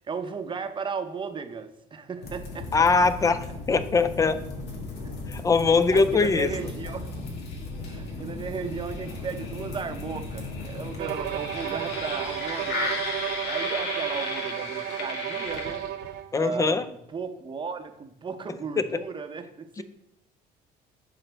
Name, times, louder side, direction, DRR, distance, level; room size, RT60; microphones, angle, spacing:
voice 1, 0.1-2.7 5.0-5.2 5.9-7.0 7.8-13.0 13.5-15.9 16.3-19.8, right 5 dB, 30° right, 7 dB, 0.7 m, -35 dB
sound 1, 2.2-16.1, left 2 dB, 80° left, 1.5 m, -35 dB
voice 2, 2.7-4.4 5.3-6.5 16.3-16.9 18.8-19.0 19.8-19.9, left 4 dB, 20° left, 12 dB, 0.4 m, -22 dB
Bowed string instrument, 11.0-16.3, right 12 dB, 75° right, 0.4 m, -33 dB
10.0 x 3.9 x 3.4 m, 0.79 s
cardioid pair, 110°, 17 cm